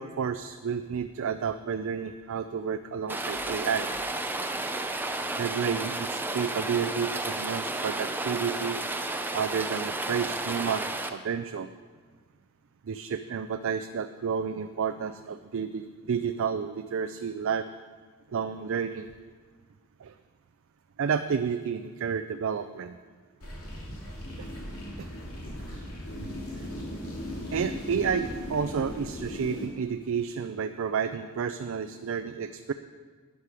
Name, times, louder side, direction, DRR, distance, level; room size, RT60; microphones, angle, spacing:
voice 1, 0.0-3.9 5.4-8.8 9.3-11.7 12.8-17.7 18.3-19.1 20.0-20.1 21.0-23.0 24.4-24.5 25.0-25.1 26.5-26.7 27.5-32.7, right 6 dB, 60° right, 9 dB, 0.4 m, -31 dB
Rain, 3.1-11.1, right 2 dB, 10° right, 0.5 m, -32 dB
sound 1, 23.4-29.7, left 1 dB, 70° left, 2.8 m, -38 dB
12.5 x 9.6 x 4.9 m, 1.5 s
head